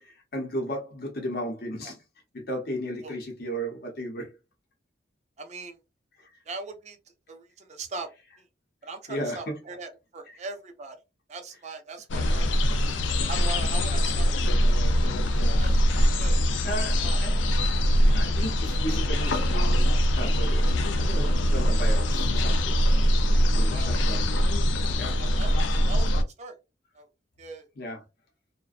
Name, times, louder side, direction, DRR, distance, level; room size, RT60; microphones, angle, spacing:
voice 1, 0.0-2.0 2.3-4.4 6.2-6.3 9.1-9.4 10.3-10.4 16.6-17.4 18.1-22.8 23.6-24.4 25.0-25.2 27.8-28.0, equal, 55° left, 0.7 m, -35 dB
voice 2, 5.4-5.8 6.5-7.0 7.3-8.1 8.4-8.5 8.8-11.0 11.3-12.6 13.3-14.3 14.5-14.8 15.0-15.1 15.6-15.7 16.1-16.4 17.0-17.4 18.0-18.1 20.6-20.7 23.7-24.0 24.9-26.6 26.9-27.1 27.4-27.7, right 3 dB, 40° right, 0.5 m, -40 dB
sound 1, 12.1-26.2, equal, 85° left, 0.4 m, -23 dB
2.5 x 2.1 x 2.3 m
head